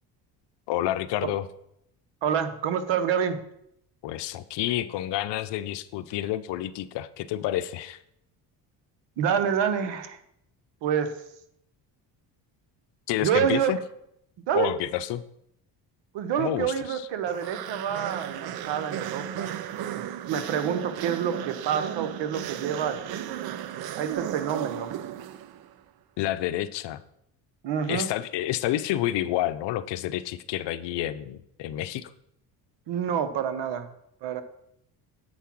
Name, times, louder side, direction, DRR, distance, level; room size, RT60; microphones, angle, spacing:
voice 1, 0.7-1.5 4.0-8.0 13.1-13.8 14.5-15.2 16.4-17.1 26.2-27.0 27.9-32.1, left 13 dB, 65° left, 13 dB, 0.6 m, -29 dB
voice 2, 2.2-3.4 9.2-10.2 10.8-11.2 13.2-13.7 14.5-14.7 16.1-23.3 24.0-25.0 27.6-28.1 32.9-33.9 34.2-34.4, right 8 dB, 70° right, 10 dB, 1.1 m, -28 dB
sound 1, 17.3-25.7, right 11 dB, 55° right, 0.6 m, -35 dB
7.9 x 4.7 x 6.0 m, 0.76 s
supercardioid pair, 85°, 44 cm